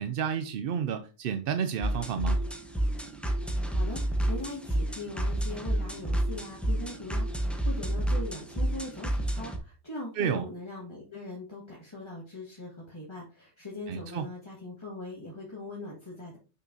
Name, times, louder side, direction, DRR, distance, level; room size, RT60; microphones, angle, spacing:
voice 1, 0.0-2.4 10.2-10.4 13.9-14.3, right 7 dB, 60° right, 0.6 m, -31 dB
sound 1, 1.8-9.6, right 1 dB, ahead, 0.7 m, -30 dB
voice 2, 3.5-16.4, left 2 dB, 20° left, 1.7 m, -41 dB
6.5 x 5.6 x 2.7 m
omnidirectional pair, 1.3 m